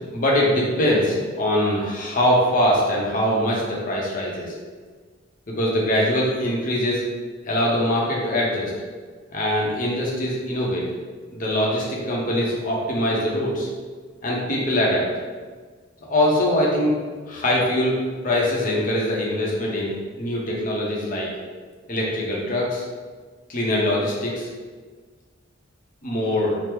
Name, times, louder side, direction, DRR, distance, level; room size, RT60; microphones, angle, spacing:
voice 1, 0.0-4.5 5.5-7.0 7.4-8.7 9.3-10.8 11.3-13.7 14.2-15.1 16.1-17.0 17.3-18.0 18.2-21.3 21.9-22.8 23.5-24.5 26.0-26.6, left 1 dB, 45° left, -3 dB, 0.7 m, -22 dB
3.0 x 2.0 x 3.4 m, 1.5 s
head